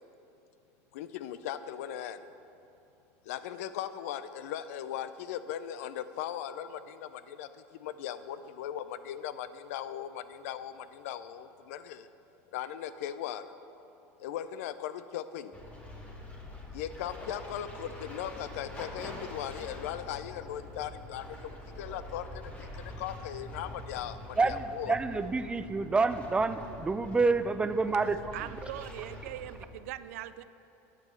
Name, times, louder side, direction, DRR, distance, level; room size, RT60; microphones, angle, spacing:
voice 1, 0.9-2.3 3.2-12.1 12.5-13.5 14.2-15.5 16.7-25.0, left 10 dB, 85° left, 13 dB, 0.4 m, -38 dB
sound 1, 15.5-29.7, left 1 dB, 20° left, 1.7 m, -45 dB
voice 2, 24.4-28.3, right 3 dB, 15° right, 12 dB, 0.4 m, -28 dB
voice 3, 28.3-30.4, right 13 dB, 85° right, 14 dB, 0.3 m, -41 dB
7.6 x 6.1 x 7.5 m, 2.8 s
supercardioid pair, 110°, 8 cm